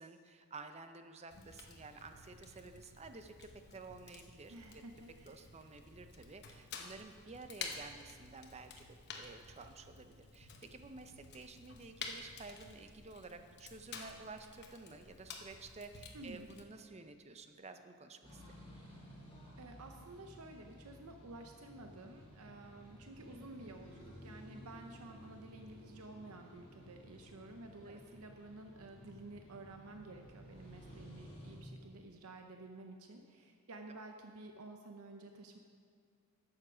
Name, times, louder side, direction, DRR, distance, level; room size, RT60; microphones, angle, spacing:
voice 1, 0.0-4.8 5.3-18.4 27.8-28.0, right 3 dB, 30° right, 8 dB, 0.6 m, -52 dB
Fire, 1.3-16.6, left 5 dB, 50° left, 0.9 m, -51 dB
voice 2, 4.5-5.4 16.1-16.5 19.6-35.6, right 2 dB, 70° right, 4 dB, 0.7 m, -52 dB
sound 1, 18.2-31.6, equal, 25° left, 2.6 m, -55 dB
11.0 x 7.2 x 5.0 m, 2.3 s
head